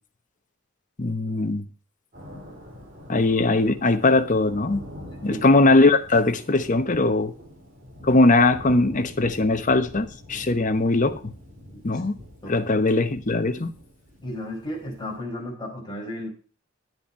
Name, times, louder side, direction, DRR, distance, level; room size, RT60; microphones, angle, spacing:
voice 1, 1.0-1.6 3.1-4.8 5.2-7.3 8.0-11.3 11.8-12.2 12.5-13.7, left 2 dB, 40° left, 0.9 m, -20 dB
Thunder, 2.1-15.2, equal, 40° right, 3.8 m, -44 dB
voice 2, 14.2-16.3, left 1 dB, 20° left, 4.3 m, -34 dB
10.5 x 7.9 x 4.5 m
head